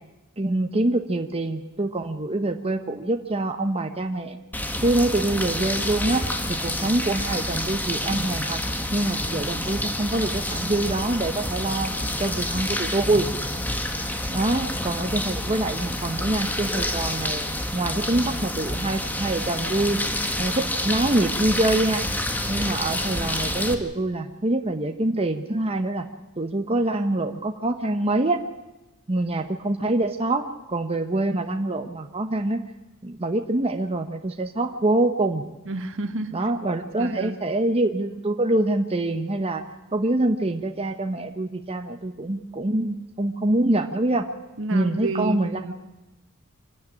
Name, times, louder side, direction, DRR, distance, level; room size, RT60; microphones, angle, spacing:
voice 1, 0.4-4.4 4.8-8.6 8.9-11.9 12.2-13.3 14.3-20.0 20.4-22.1 22.5-26.1 26.4-28.4 29.1-32.6 33.0-35.4 36.3-39.6 39.9-44.3 44.7-45.7, right 2 dB, 25° right, 5 dB, 1.0 m, -25 dB
sound 1, 4.5-23.7, left 1 dB, 10° left, 1.6 m, -28 dB
voice 2, 35.7-36.5 37.0-37.4 44.6-45.7, right 2 dB, 65° right, 8 dB, 1.8 m, -30 dB
25.5 x 13.0 x 9.9 m, 1.0 s
head